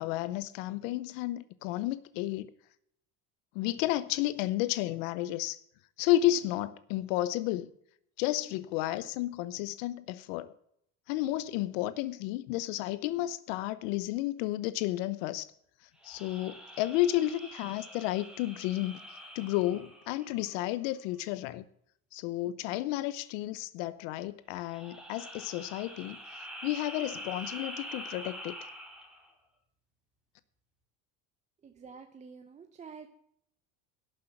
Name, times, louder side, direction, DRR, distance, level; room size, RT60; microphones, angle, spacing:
voice 1, 0.0-2.5 3.5-5.6 6.0-7.7 8.2-10.5 11.1-15.5 16.0-19.0 19.3-21.6 22.1-26.2 26.6-28.5, left 15 dB, 85° left, 0.8 m, -32 dB
sound 1, 16.0-20.8 24.6-29.3, equal, ahead, 2.2 m, -45 dB
voice 2, 31.6-33.1, right 5 dB, 20° right, 0.7 m, -48 dB
12.0 x 6.5 x 7.7 m
cardioid pair, 150°, 37 cm